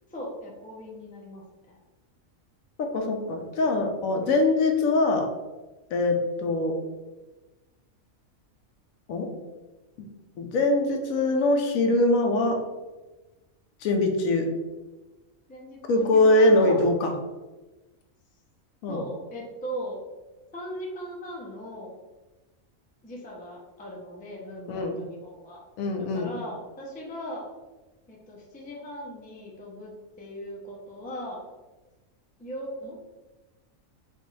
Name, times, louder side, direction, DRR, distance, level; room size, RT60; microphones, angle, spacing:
voice 1, 0.1-1.8 15.5-16.8 18.9-20.0 20.5-21.9 23.0-25.6 26.1-27.5 28.1-31.4 32.4-33.0, equal, 10° left, -2 dB, 0.4 m, -38 dB
voice 2, 2.8-5.3 5.9-6.7 9.1-9.3 10.4-12.6 13.8-14.5 15.9-17.1 18.8-19.0 24.7-25.0 25.8-26.3, left 2 dB, 75° left, 3 dB, 1.1 m, -22 dB
5.2 x 2.4 x 3.2 m, 1.1 s
omnidirectional pair, 1.5 m